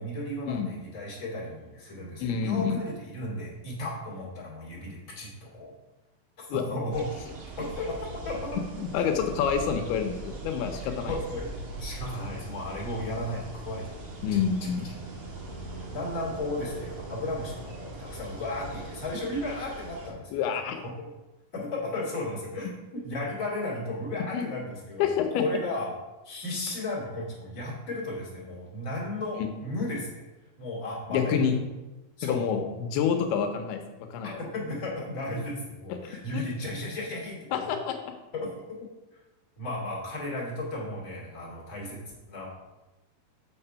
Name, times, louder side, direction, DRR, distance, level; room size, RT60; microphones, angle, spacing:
voice 1, 0.0-5.7 6.4-7.0 7.6-8.0 8.2-8.5 8.9-9.0 11.1-11.5 11.8-14.4 15.9-20.6 20.9-21.1 21.5-22.7 23.0-25.9 26.2-30.2 30.6-31.5 32.2-32.7 34.2-37.7 38.3-38.6 39.6-42.5, left 1 dB, 25° left, -5 dB, 2.6 m, -34 dB
voice 2, 2.2-2.8 6.5-6.6 8.8-11.2 14.2-14.9 20.3-20.8 24.3-24.5 25.0-25.4 29.4-29.5 31.1-31.6 32.2-34.4 35.9-36.5 37.5-38.0, left 7 dB, 85° left, 6 dB, 2.7 m, -28 dB
sound 1, 6.9-20.1, right 2 dB, 55° right, 1.7 m, -40 dB
6.8 x 6.4 x 5.6 m, 1.1 s
omnidirectional pair, 4.5 m